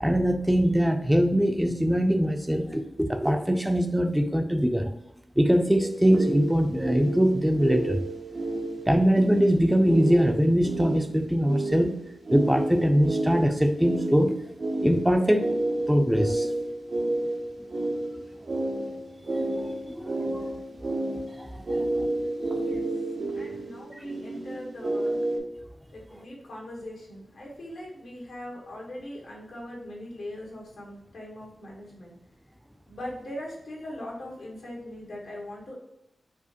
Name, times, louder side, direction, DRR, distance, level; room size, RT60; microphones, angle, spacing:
voice 1, 0.0-4.9 5.4-8.0 8.9-12.0 12.3-14.4 14.8-15.5 15.9-16.5 18.8-18.9 19.3-20.4 20.9-22.1, equal, 5° right, 6 dB, 0.4 m, -23 dB
sound 1, 5.8-25.4, right 2 dB, 65° right, 0.6 m, -31 dB
voice 2, 22.5-22.9 23.3-25.2 25.9-32.1 32.9-35.7, left 1 dB, 85° left, -4 dB, 1.1 m, -40 dB
4.9 x 2.1 x 2.7 m, 0.85 s
cardioid pair, 45°, 0 cm